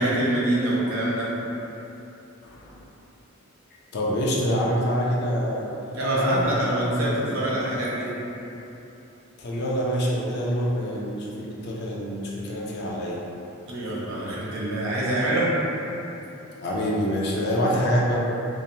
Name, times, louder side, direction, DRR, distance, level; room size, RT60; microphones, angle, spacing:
voice 1, 0.0-1.3 5.9-8.1 13.7-15.5, right 1 dB, 70° right, -6 dB, 0.6 m, -25 dB
voice 2, 2.4-2.8 3.9-5.7 6.1-7.5 9.4-13.2 16.6-18.2, equal, 50° left, -4 dB, 0.4 m, -26 dB
3.0 x 2.1 x 2.6 m, 3.0 s
head